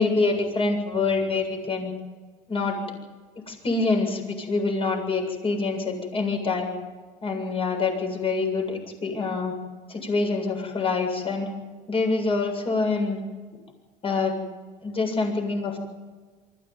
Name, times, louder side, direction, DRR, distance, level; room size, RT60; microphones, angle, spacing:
voice 1, 0.0-1.9 2.5-2.8 3.5-6.7 7.2-9.5 9.9-11.5 11.9-13.2 14.0-14.3 14.8-15.8, left 3 dB, 35° left, 3 dB, 7.6 m, -25 dB
24.0 x 15.0 x 9.6 m, 1.4 s
cardioid pair, 120°, 16 cm